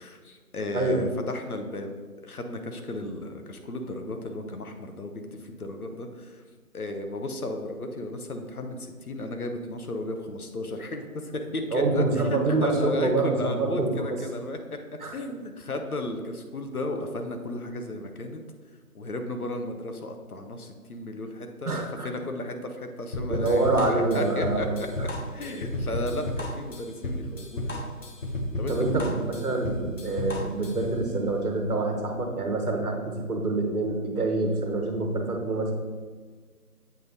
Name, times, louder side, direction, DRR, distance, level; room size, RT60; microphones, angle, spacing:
voice 1, 0.0-2.0 2.2-6.4 6.7-12.0 12.5-14.6 15.1-18.4 18.9-27.9 28.6-28.8 29.0-29.2, left 2 dB, 70° left, 5 dB, 0.9 m, -34 dB
voice 2, 11.7-14.2 15.0-15.1 21.6-22.1 23.3-24.8 28.7-35.7, right 2 dB, 70° right, 3 dB, 1.4 m, -26 dB
sound 1, 23.1-31.0, left 1 dB, 55° left, 1.2 m, -32 dB
7.8 x 3.4 x 4.0 m, 1.5 s
figure-of-eight pair, 165°, 46 cm